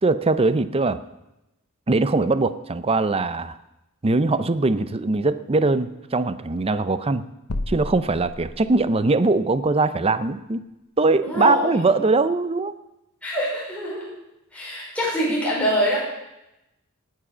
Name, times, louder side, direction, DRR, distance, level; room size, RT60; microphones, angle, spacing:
voice 1, 0.0-1.0 1.9-3.6 4.0-7.3 7.7-10.6 11.0-12.7, right 3 dB, 25° right, 13 dB, 0.5 m, -21 dB
sound 1, 7.5-9.1, left 1 dB, 75° left, 1.0 m, -32 dB
voice 2, 11.2-11.8 13.2-14.1 14.5-16.0, equal, 5° left, -6 dB, 5.0 m, -24 dB
18.5 x 7.5 x 6.1 m, 0.93 s
head